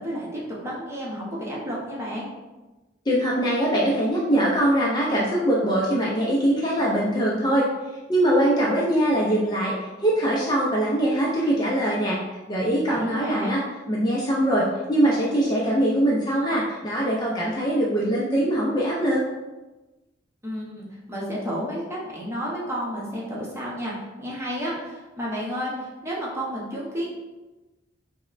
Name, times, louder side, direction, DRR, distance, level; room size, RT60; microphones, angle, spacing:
voice 1, 0.0-2.3 12.9-13.6 20.4-27.1, equal, 15° right, -5 dB, 0.8 m, -31 dB
voice 2, 3.1-7.6 8.1-9.7 10.0-12.2 12.5-13.6 13.9-19.2, right 1 dB, 20° left, -4 dB, 0.4 m, -22 dB
5.2 x 2.1 x 2.5 m, 1.1 s
head